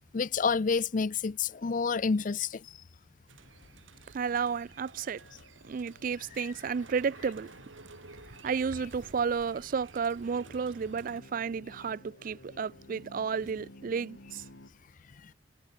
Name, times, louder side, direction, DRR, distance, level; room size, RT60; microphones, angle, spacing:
voice 1, 0.1-2.7 6.4-6.5 15.2-15.3, left 5 dB, 45° left, 0.5 m, -29 dB
sound 1, 3.3-11.2, right 3 dB, 90° right, 2.2 m, -53 dB
sound 2, 3.4-14.7, left 1 dB, 75° left, 2.4 m, -56 dB
voice 2, 4.1-5.2 5.6-7.5 8.3-14.4, right 6 dB, 45° right, 0.4 m, -32 dB
head